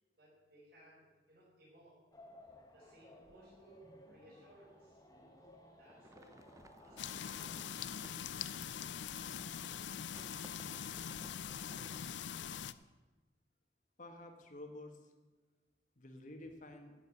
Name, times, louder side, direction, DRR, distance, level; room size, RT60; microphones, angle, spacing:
voice 1, 0.2-2.0 2.7-5.0 5.8-6.4 6.7-8.1, right 1 dB, 60° right, -7 dB, 4.5 m, -62 dB
sound 1, 2.1-7.6, left 1 dB, 20° left, 1.3 m, -60 dB
sound 2, 5.8-12.0, right 1 dB, 20° right, 0.6 m, -60 dB
sound 3, 7.0-12.7, left 8 dB, 90° left, 0.5 m, -43 dB
voice 2, 14.0-15.1 16.0-16.9, left 1 dB, 45° left, 5 dB, 1.7 m, -50 dB
11.5 x 8.0 x 8.2 m, 1.2 s
head